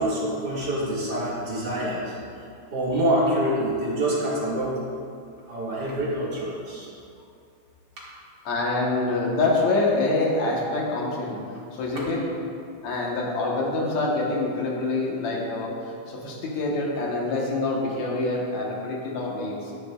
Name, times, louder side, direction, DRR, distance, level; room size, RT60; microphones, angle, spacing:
voice 1, 0.0-4.8 5.5-6.9 8.0-8.1, right 1 dB, 35° right, -8 dB, 2.4 m, -26 dB
voice 2, 8.5-11.4 11.8-12.3 12.8-19.7, left 2 dB, 65° left, -2 dB, 2.5 m, -26 dB
13.5 x 7.2 x 2.4 m, 2.4 s
omnidirectional pair, 3.6 m